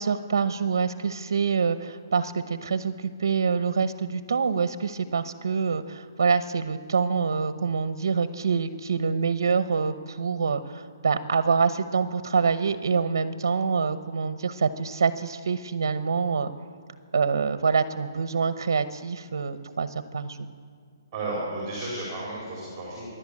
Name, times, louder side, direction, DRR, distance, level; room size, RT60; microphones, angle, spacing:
voice 1, 0.0-16.5 17.1-20.5, right 5 dB, 65° right, 11 dB, 0.9 m, -26 dB
voice 2, 21.1-23.1, right 2 dB, 10° right, -4 dB, 4.5 m, -33 dB
26.5 x 11.5 x 8.6 m, 2.1 s
hypercardioid pair, 175°, 2 cm